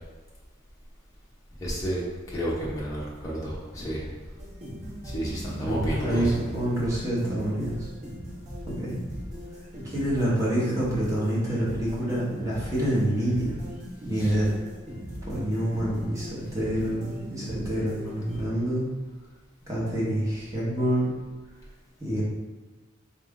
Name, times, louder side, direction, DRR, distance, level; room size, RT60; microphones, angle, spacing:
voice 1, 1.6-2.0 2.3-4.1 5.0-6.4 14.1-14.4, equal, 15° left, -7 dB, 0.7 m, -31 dB
sound 1, 4.4-18.4, equal, 35° right, 0.8 m, -39 dB
voice 2, 5.6-6.3 6.5-7.9 8.7-8.9 9.8-13.6 14.0-14.5 15.3-18.9 19.7-21.1 22.0-22.2, right 1 dB, 15° right, -8 dB, 1.1 m, -27 dB
3.6 x 2.5 x 3.6 m, 1.4 s
head